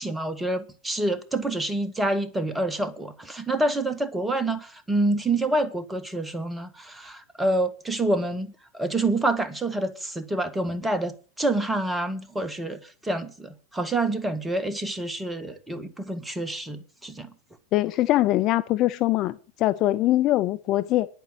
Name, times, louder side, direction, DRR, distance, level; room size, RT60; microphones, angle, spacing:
voice 1, 0.0-17.3, right 2 dB, 10° right, 1.7 m, -27 dB
voice 2, 17.7-21.1, left 15 dB, 35° left, 0.6 m, -22 dB
10.5 x 9.2 x 7.1 m
figure-of-eight pair, 90°, 0 cm